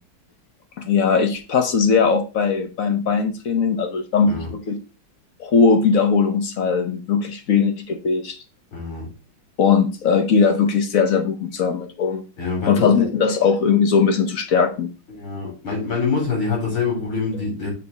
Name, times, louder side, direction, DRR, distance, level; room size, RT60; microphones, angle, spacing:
voice 1, 0.8-4.8 5.4-8.4 9.6-12.2 12.7-14.9, left 5 dB, 55° left, 6 dB, 1.0 m, -19 dB
voice 2, 8.7-9.1 12.4-13.0 15.1-17.7, left 4 dB, 80° left, -2 dB, 4.6 m, -25 dB
7.1 x 3.4 x 5.4 m, 0.32 s
omnidirectional pair, 2.2 m